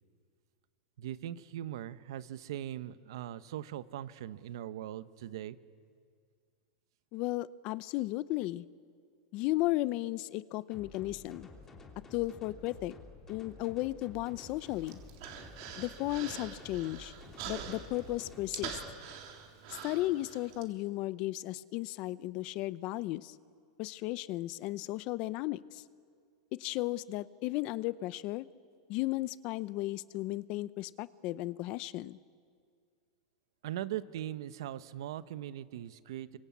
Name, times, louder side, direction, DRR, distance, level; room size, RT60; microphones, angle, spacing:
voice 1, 1.0-5.6 33.6-36.4, right 12 dB, 65° right, 13 dB, 1.1 m, -40 dB
voice 2, 7.1-8.7 9.3-11.5 12.1-12.9 13.3-15.0 15.8-17.1 17.5-18.8 19.7-23.3 23.8-25.8 26.5-28.5 28.9-32.2, left 18 dB, 40° left, 17 dB, 0.6 m, -35 dB
sound 1, 10.7-18.9, left 3 dB, 15° left, 2.8 m, -52 dB
Human voice, 14.4-20.6, right 8 dB, 50° right, 3.4 m, -45 dB
27.5 x 24.5 x 8.5 m, 2.1 s
supercardioid pair, 160°, 3 cm